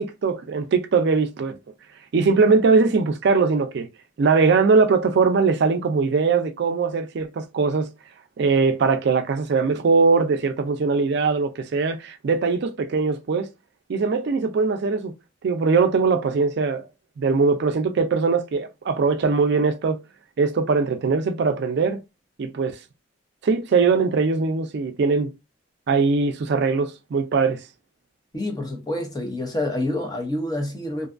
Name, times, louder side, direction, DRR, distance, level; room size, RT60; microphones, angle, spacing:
voice 1, 0.0-1.6 2.1-3.9 4.2-7.9 8.4-13.5 13.9-15.1 15.4-16.9 17.2-20.0 20.4-22.0 22.4-22.8 23.4-25.3 25.9-27.6, right 4 dB, 60° right, 0.4 m, -21 dB
voice 2, 28.3-31.1, left 1 dB, 20° left, 0.6 m, -27 dB
2.6 x 2.3 x 2.4 m
head